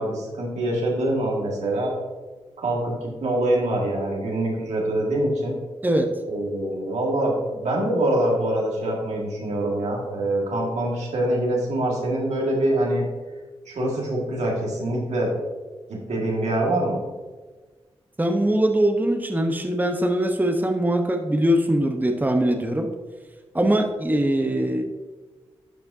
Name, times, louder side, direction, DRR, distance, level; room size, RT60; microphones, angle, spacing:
voice 1, 0.0-1.9 2.6-5.6 6.3-13.0 13.7-15.3 15.9-17.0, right 1 dB, 75° right, -2 dB, 1.9 m, -24 dB
voice 2, 18.2-22.9 23.5-24.8, right 1 dB, 15° right, 3 dB, 0.9 m, -22 dB
12.0 x 4.8 x 2.7 m, 1.3 s
supercardioid pair, 40°, 12 cm